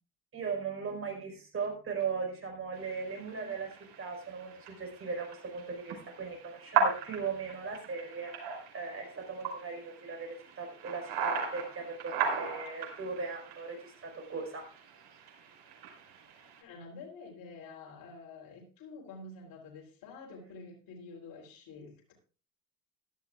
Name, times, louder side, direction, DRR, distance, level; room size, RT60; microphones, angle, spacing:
voice 1, 0.3-3.7 4.0-14.7, right 5 dB, 35° right, 2 dB, 5.0 m, -38 dB
sound 1, 2.7-16.6, right 6 dB, 90° right, 5.5 m, -38 dB
voice 2, 3.3-3.6 16.6-22.1, left 3 dB, 60° left, -1 dB, 3.8 m, -48 dB
16.5 x 12.0 x 2.5 m, 0.37 s
cardioid pair, 145°, 38 cm